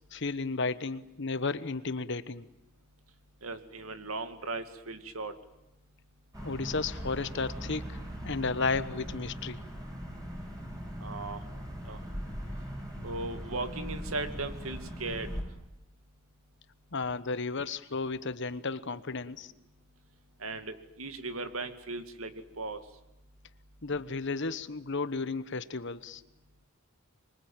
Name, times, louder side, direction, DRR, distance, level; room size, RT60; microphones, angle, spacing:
voice 1, 0.1-2.5 6.4-8.0 8.2-9.6 16.9-19.5 23.8-26.2, left 4 dB, 60° left, 14 dB, 1.2 m, -33 dB
voice 2, 3.4-5.3 11.0-11.4 11.9-12.0 13.0-15.3 20.4-22.8, right 3 dB, 80° right, 9 dB, 2.4 m, -37 dB
sound 1, 6.3-15.4, equal, 15° right, 6.6 m, -40 dB
26.0 x 23.5 x 9.0 m, 0.86 s
head